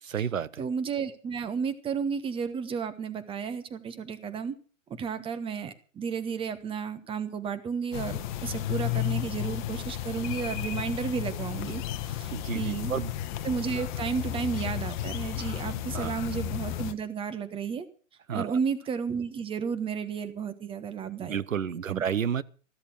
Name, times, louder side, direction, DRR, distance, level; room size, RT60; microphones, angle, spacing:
voice 1, 0.0-0.6 12.3-13.1 15.9-16.2 18.3-18.6 21.2-22.4, right 8 dB, 75° right, 0.9 m, -31 dB
voice 2, 0.6-4.5 5.0-12.9 13.4-17.8 18.3-21.4 21.9-22.0, right 6 dB, 15° right, 1.3 m, -32 dB
sound 1, 7.9-16.9, left 12 dB, 35° left, 1.2 m, -33 dB
14.0 x 13.0 x 5.8 m
figure-of-eight pair, 115°, 40 cm